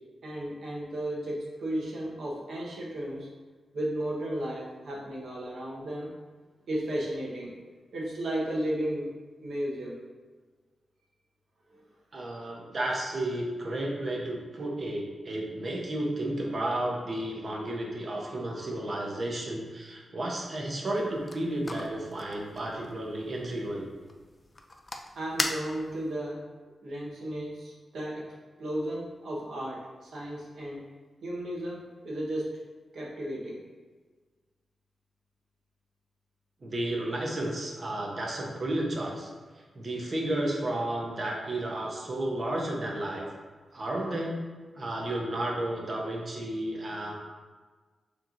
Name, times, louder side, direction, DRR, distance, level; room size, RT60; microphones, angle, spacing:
voice 1, 0.2-3.3 3.7-6.1 6.7-7.5 7.9-9.1 9.4-10.0 11.7-11.8 12.3-12.4 25.1-26.4 26.8-28.2 28.6-30.8 31.2-32.5 32.9-33.6, right 1 dB, 70° right, -4 dB, 1.0 m, -34 dB
voice 2, 12.1-23.9 36.6-39.3 39.7-43.3 43.7-44.4 44.7-47.1, right 1 dB, 40° right, -2 dB, 0.8 m, -32 dB
sound 1, 20.9-26.1, left 2 dB, 20° left, 0.3 m, -39 dB
6.4 x 3.1 x 2.5 m, 1.4 s
wide cardioid pair, 165°, 0 cm